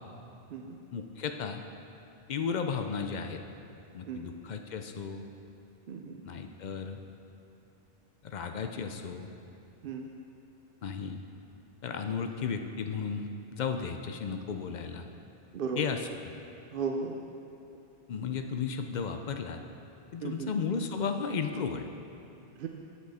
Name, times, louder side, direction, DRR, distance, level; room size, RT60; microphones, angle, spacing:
voice 1, 0.9-1.6 2.3-3.4 3.9-5.2 6.2-7.0 8.2-9.3 10.8-11.2 11.8-15.0 15.8-16.3 18.1-19.6 20.1-21.8, left 6 dB, 55° left, 6 dB, 0.5 m, -34 dB
voice 2, 5.9-6.2 9.8-10.1 15.5-15.8 16.7-17.2 20.2-20.5 22.6-22.7, right 5 dB, 60° right, 2 dB, 0.7 m, -35 dB
9.5 x 6.2 x 4.2 m, 2.8 s
omnidirectional pair, 1.1 m